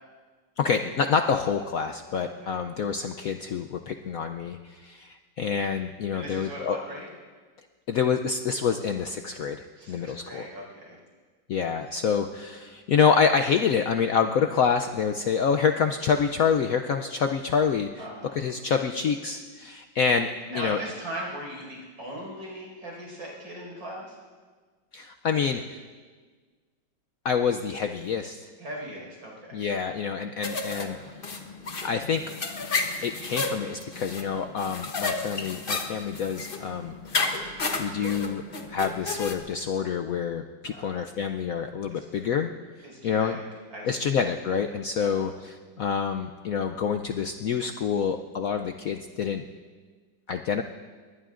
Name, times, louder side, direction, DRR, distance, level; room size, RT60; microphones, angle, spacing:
voice 1, 0.6-6.8 7.9-10.4 11.5-18.1 18.3-20.8 24.9-25.8 27.2-28.5 29.5-31.3 31.8-32.3 33.0-36.9 37.8-38.4 38.7-42.5 43.0-43.4 43.8-49.4 50.3-50.6, left 6 dB, 75° left, 6 dB, 0.8 m, -27 dB
voice 2, 6.1-7.1 9.8-11.0 18.0-18.4 20.5-24.2 28.6-29.6 40.6-41.0 41.9-42.0 42.8-44.1 44.7-45.3, right 1 dB, 85° right, -2 dB, 5.9 m, -39 dB
sound 1, 30.4-39.3, left 3 dB, 35° left, 1.0 m, -32 dB
21.0 x 20.5 x 2.5 m, 1.5 s
omnidirectional pair, 2.1 m